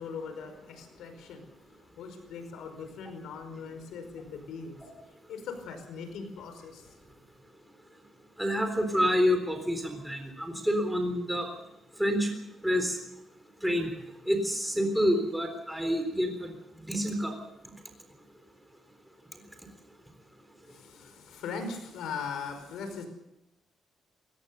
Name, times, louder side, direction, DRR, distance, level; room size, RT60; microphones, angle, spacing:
voice 1, 0.0-4.9 5.3-6.9 20.6-23.1, left 5 dB, 90° left, 7 dB, 5.0 m, -40 dB
voice 2, 8.4-11.5 12.0-12.3 12.6-13.0 13.6-13.9 14.3-16.5 16.9-17.3, equal, ahead, 5 dB, 3.8 m, -27 dB
21.5 x 18.0 x 6.9 m, 0.87 s
cardioid pair, 115°, 0 cm